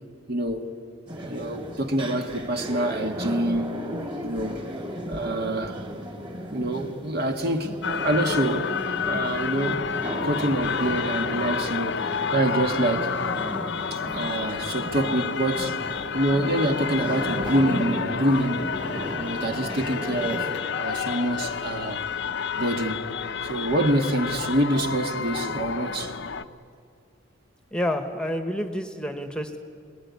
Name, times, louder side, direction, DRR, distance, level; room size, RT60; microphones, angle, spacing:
voice 1, 0.3-0.7 1.2-3.8 4.2-4.7 5.1-5.8 6.5-7.7 8.0-8.7 9.1-9.9 10.2-12.0 12.3-13.1 13.9-15.7 16.1-18.7 19.2-20.5 20.8-22.0 22.6-23.1 23.4-26.1, right 1 dB, 50° right, 1.9 m, -26 dB
sound 1, 1.1-20.4, equal, 25° right, 3.2 m, -35 dB
sound 2, 7.8-26.4, left 6 dB, 60° left, 0.7 m, -30 dB
voice 2, 27.7-29.6, left 1 dB, 5° left, 1.3 m, -29 dB
28.5 x 20.5 x 9.7 m
head